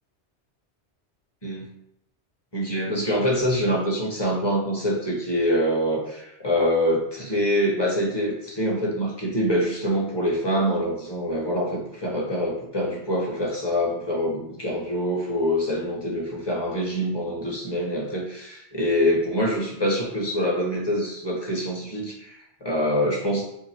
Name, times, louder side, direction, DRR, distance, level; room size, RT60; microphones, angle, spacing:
voice 1, 2.5-23.5, equal, 25° left, -2 dB, 0.8 m, -25 dB
2.8 x 2.7 x 4.3 m, 0.76 s
omnidirectional pair, 1.2 m